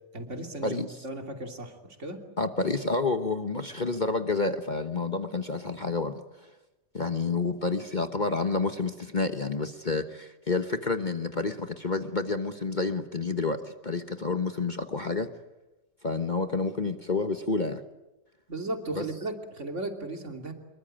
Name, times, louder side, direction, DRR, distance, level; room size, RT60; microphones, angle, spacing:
voice 1, 0.1-2.2 18.5-20.5, right 2 dB, 45° right, 4 dB, 3.2 m, -36 dB
voice 2, 2.4-6.5 6.9-15.3 16.0-17.8 19.0-19.1, left 3 dB, 30° left, 8 dB, 1.2 m, -29 dB
25.5 x 22.5 x 8.9 m, 1.0 s
omnidirectional pair, 1.8 m